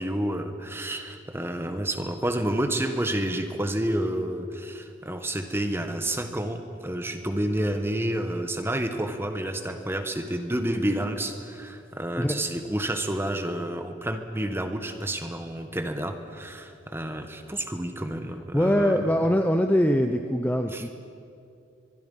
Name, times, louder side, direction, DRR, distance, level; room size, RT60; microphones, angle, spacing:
voice 1, 0.0-19.0 20.7-20.8, right 1 dB, 10° right, 7 dB, 1.3 m, -29 dB
voice 2, 18.5-20.9, equal, 10° left, 5 dB, 0.7 m, -22 dB
23.5 x 22.5 x 5.6 m, 2.5 s
head